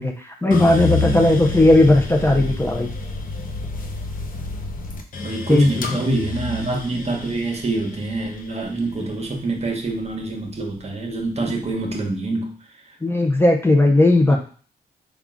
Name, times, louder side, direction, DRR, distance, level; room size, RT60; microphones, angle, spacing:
voice 1, 0.0-2.9 5.5-6.1 13.0-14.4, left 2 dB, 15° left, 1 dB, 0.6 m, -17 dB
sound 1, 0.5-10.7 11.2-11.9, left 3 dB, 55° left, 0.7 m, -29 dB
voice 2, 5.2-12.5 14.3-14.4, right 2 dB, 40° right, 2 dB, 1.0 m, -26 dB
3.7 x 2.4 x 3.6 m, 0.41 s
cardioid pair, 70°, 17 cm